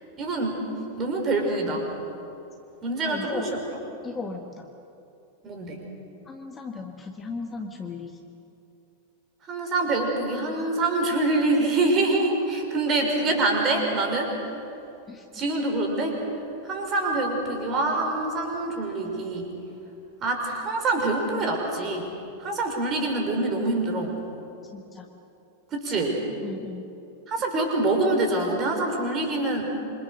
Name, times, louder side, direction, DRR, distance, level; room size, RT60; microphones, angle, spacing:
voice 1, 0.2-0.6 1.0-1.9 2.8-3.6 5.4-5.8 9.5-14.3 15.3-16.2 16.6-19.4 20.2-22.1 22.4-24.1 25.7-26.2 27.3-29.7, right 2 dB, 30° right, 2 dB, 5.5 m, -25 dB
voice 2, 3.1-3.5 4.0-4.7 6.2-8.3 15.1-15.3 24.7-25.1 26.4-26.9, left 4 dB, 15° left, 4 dB, 1.6 m, -36 dB
27.0 x 26.0 x 6.6 m, 2.8 s
figure-of-eight pair, 90°, 0 cm